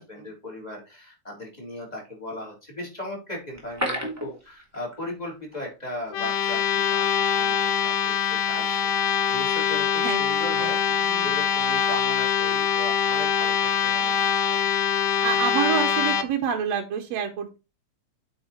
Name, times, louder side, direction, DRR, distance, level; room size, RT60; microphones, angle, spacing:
voice 1, 0.0-10.8 11.2-14.7, left 1 dB, 15° left, -1 dB, 3.7 m, -37 dB
sound 1, 3.5-5.3 5.5-5.6 6.1-6.2, equal, 5° right, 2.2 m, -31 dB
sound 2, 6.1-16.2, left 8 dB, 75° left, 2.3 m, -24 dB
voice 2, 15.2-17.6, right 8 dB, 70° right, 4 dB, 1.9 m, -27 dB
8.6 x 4.8 x 4.4 m, 0.29 s
omnidirectional pair, 3.4 m